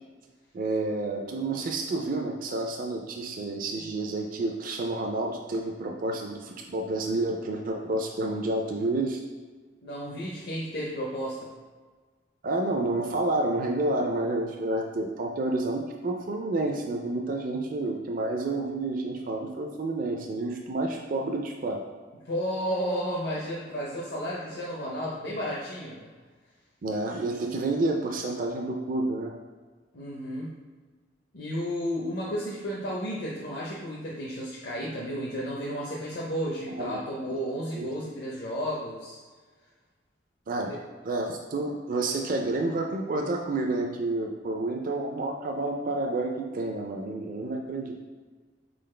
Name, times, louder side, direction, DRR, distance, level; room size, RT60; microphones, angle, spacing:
voice 1, 0.5-9.2 12.4-21.8 26.8-29.3 36.7-37.0 37.3-37.4 37.7-37.9 40.5-40.7 41.0-48.0, right 2 dB, 50° right, 1 dB, 0.4 m, -29 dB
voice 2, 9.8-11.5 22.3-26.1 29.9-30.5 31.3-39.2 40.7-40.8, equal, 60° left, -6 dB, 0.7 m, -32 dB
4.2 x 3.9 x 3.2 m, 1.4 s
head